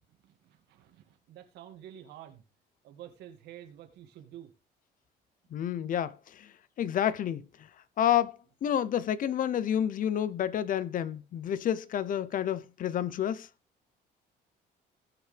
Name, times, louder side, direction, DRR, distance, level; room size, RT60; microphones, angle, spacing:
voice 1, 0.2-2.4 2.8-4.5, right 11 dB, 80° right, 2.2 m, -49 dB
voice 2, 5.5-7.7 8.0-13.5, left 10 dB, 55° left, 0.8 m, -30 dB
19.0 x 6.6 x 3.4 m
cardioid pair, 110°, 17 cm